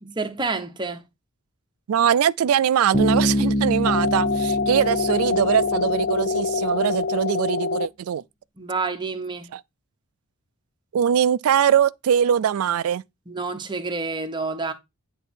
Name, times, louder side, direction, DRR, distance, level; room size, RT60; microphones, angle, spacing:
voice 1, 0.0-1.0 8.6-9.5 13.3-14.7, right 3 dB, 20° right, 1.0 m, -28 dB
voice 2, 1.9-8.2 9.5-9.6 10.9-13.0, right 9 dB, 90° right, 0.4 m, -22 dB
Bass guitar, 2.9-6.6, equal, 35° left, 0.9 m, -25 dB
sound 1, 3.9-7.9, left 4 dB, 50° left, 0.3 m, -25 dB
9.9 x 3.6 x 4.4 m
head